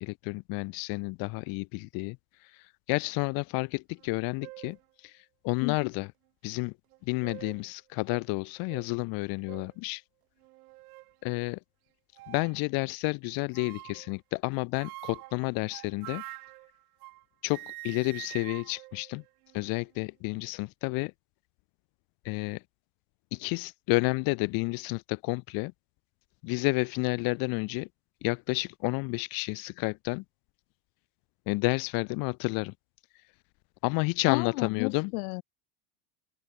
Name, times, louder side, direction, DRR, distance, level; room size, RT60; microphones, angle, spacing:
voice 1, 0.0-6.1 6.4-6.7 7.1-10.0 11.2-11.6 12.3-16.2 17.4-19.2 19.5-21.1 22.2-22.6 23.3-25.7 26.4-27.9 28.2-30.2 31.5-32.7 33.8-35.1, left 27 dB, 50° left, 1.0 m, -31 dB
sound 1, 4.0-4.1 4.4-4.8 5.5-5.6 6.9-7.7 8.1-8.2 8.7-8.9 9.5-9.7 10.4-11.1 12.1-12.6 13.5-14.1 14.8-17.2 17.5-19.8, right 20 dB, 90° right, 5.0 m, -46 dB
voice 2, 34.3-35.4, left 27 dB, 75° left, 1.9 m, -32 dB
open air
supercardioid pair, 150°, 43 cm